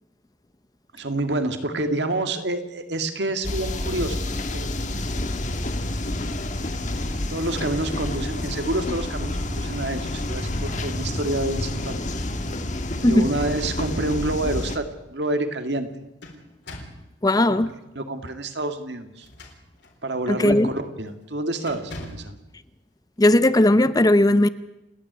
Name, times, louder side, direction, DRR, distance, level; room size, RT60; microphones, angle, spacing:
voice 1, 0.9-4.2 4.5-4.7 7.3-12.0 12.9-15.9 17.5-17.6 18.0-19.3 20.0-22.4, right 2 dB, 65° right, 2.1 m, -28 dB
sound 1, 3.4-14.8, left 1 dB, 40° left, 1.8 m, -29 dB
sound 2, 13.0-13.7 14.2-14.3 15.7-17.1 19.1-20.0 20.5-20.7 21.1-21.3 21.7-22.4, left 1 dB, 70° left, 4.2 m, -41 dB
voice 2, 17.2-17.7 20.3-20.7 23.2-24.5, left 1 dB, 20° left, 0.6 m, -17 dB
29.0 x 9.9 x 9.6 m
head